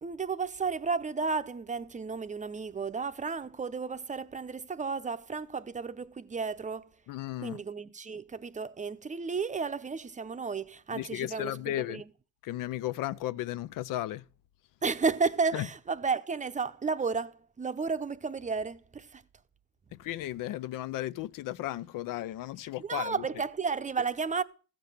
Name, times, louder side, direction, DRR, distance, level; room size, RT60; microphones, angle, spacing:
voice 1, 0.0-6.9 7.4-12.1 14.8-19.2 22.8-24.4, right 5 dB, 25° right, 0.7 m, -33 dB
voice 2, 7.1-7.6 10.9-12.0 12.4-14.2 15.5-15.7 19.9-23.2, left 14 dB, 75° left, 0.6 m, -35 dB
15.0 x 7.5 x 6.6 m
cardioid pair, 120°, 32 cm